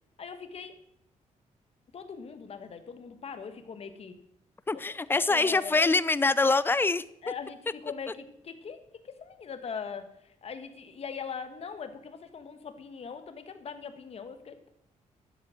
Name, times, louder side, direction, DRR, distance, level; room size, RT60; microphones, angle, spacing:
voice 1, 0.2-0.7 1.9-4.1 4.7-6.0 7.2-8.8 9.0-14.7, left 6 dB, 50° left, 8 dB, 1.5 m, -41 dB
voice 2, 4.7-7.0, left 3 dB, 15° left, 17 dB, 0.5 m, -24 dB
12.5 x 7.9 x 6.4 m, 0.76 s
cardioid pair, 120°, 13 cm